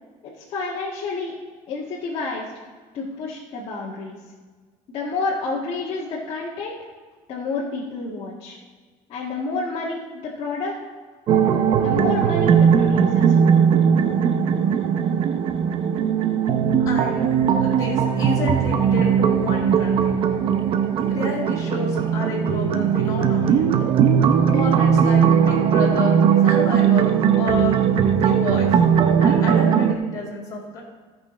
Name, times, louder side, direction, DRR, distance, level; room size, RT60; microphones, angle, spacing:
voice 1, 0.2-1.4 1.7-2.5 2.9-4.2 4.9-6.8 7.3-8.6 9.1-10.8 11.7-13.6, left 3 dB, 45° left, -6 dB, 1.6 m, -29 dB
sound 1, 11.3-30.0, right 7 dB, 45° right, 0.6 m, -19 dB
voice 2, 16.9-17.3 17.6-20.2 21.1-23.7 24.5-26.2 26.4-27.8 28.2-28.7 29.2-30.8, left 3 dB, 30° left, -6 dB, 2.3 m, -30 dB
14.5 x 5.7 x 4.2 m, 1.4 s
cardioid pair, 155°, 13 cm